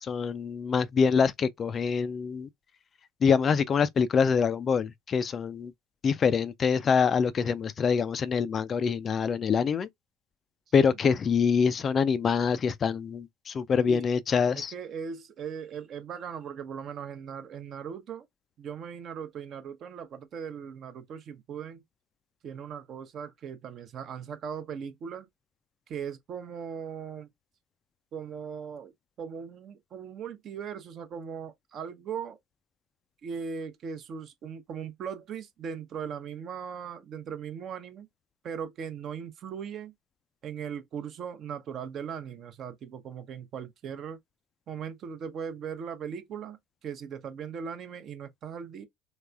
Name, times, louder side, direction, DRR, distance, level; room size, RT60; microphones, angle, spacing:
voice 1, 0.0-2.5 3.2-5.7 6.0-9.9 10.7-14.7, left 6 dB, 35° left, 0.4 m, -25 dB
voice 2, 14.5-18.3 18.6-21.8 22.4-25.3 25.9-27.3 28.1-28.9 29.2-32.4 33.2-38.1 38.4-39.9 40.4-44.2 44.7-48.9, right 7 dB, 40° right, 0.7 m, -39 dB
3.3 x 3.2 x 2.2 m
figure-of-eight pair, 65°, 0 cm